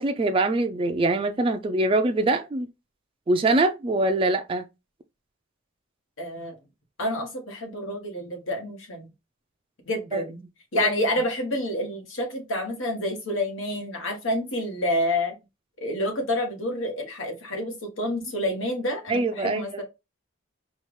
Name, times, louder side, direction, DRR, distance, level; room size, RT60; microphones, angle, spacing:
voice 1, 0.0-2.7 3.3-4.7 10.1-10.2 10.8-10.9 19.1-19.6, right 2 dB, 25° right, 0.3 m, -23 dB
voice 2, 6.2-6.5 7.0-9.1 9.9-10.4 10.7-15.4 15.8-19.8, left 1 dB, 80° left, 1.3 m, -28 dB
4.4 x 2.4 x 3.1 m
head